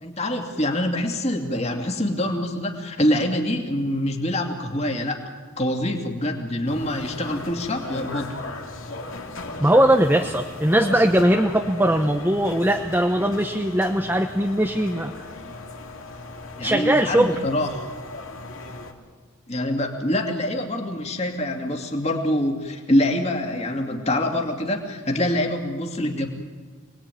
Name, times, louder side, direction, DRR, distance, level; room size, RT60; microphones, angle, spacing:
voice 1, 0.0-5.2 5.6-8.3 16.6-17.8 19.5-26.3, left 1 dB, 30° left, 3 dB, 2.6 m, -25 dB
sound 1, 6.7-18.9, left 2 dB, 65° left, 2.6 m, -37 dB
voice 2, 9.6-15.3 16.6-17.3, right 1 dB, 10° right, 4 dB, 0.9 m, -20 dB
27.5 x 20.0 x 9.3 m, 1.5 s
head